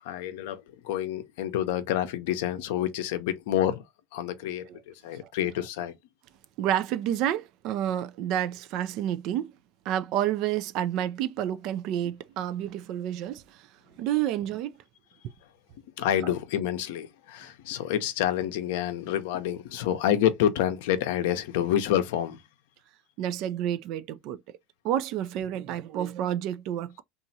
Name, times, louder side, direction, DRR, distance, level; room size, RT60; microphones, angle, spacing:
voice 1, 0.0-3.8 4.1-5.9 16.0-22.4, left 11 dB, 80° left, 0.5 m, -28 dB
voice 2, 6.6-9.5 9.9-13.7 14.0-14.7 16.2-16.3 23.2-24.4 24.8-27.0, right 11 dB, 60° right, 0.3 m, -29 dB
2.9 x 2.4 x 2.6 m
supercardioid pair, 100°, 0 cm